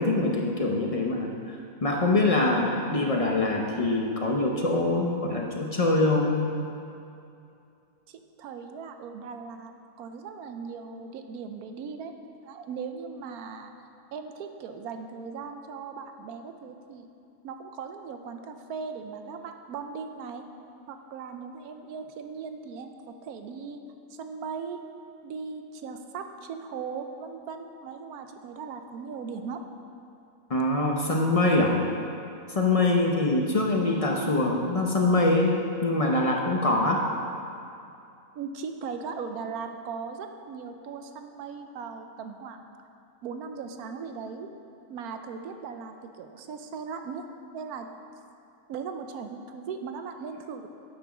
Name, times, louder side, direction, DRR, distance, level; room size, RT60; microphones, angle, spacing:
voice 1, 0.0-6.5 30.5-31.7 32.5-35.6 35.8-37.0, left 2 dB, 55° left, 0 dB, 0.4 m, -24 dB
voice 2, 8.1-9.7 10.0-12.1 12.4-13.7 14.1-17.1 17.4-20.4 20.9-22.9 23.2-23.8 24.1-24.8 25.2-29.6 38.3-42.7 43.2-44.5 44.9-47.2 47.5-47.9 48.7-50.7, right 5 dB, 75° right, 6 dB, 1.1 m, -38 dB
8.7 x 6.1 x 6.0 m, 2.6 s
omnidirectional pair, 1.6 m